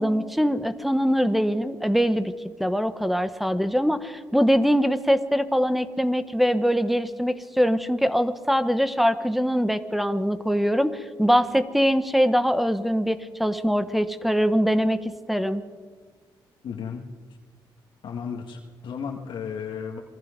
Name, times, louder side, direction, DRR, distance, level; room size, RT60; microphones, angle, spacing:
voice 1, 0.0-2.3 2.6-10.9 11.2-15.6, equal, ahead, 10 dB, 1.1 m, -23 dB
voice 2, 16.6-17.0 18.0-20.0, left 6 dB, 70° left, 1 dB, 1.9 m, -34 dB
27.0 x 21.0 x 5.2 m, 1.5 s
cardioid pair, 110°, 9 cm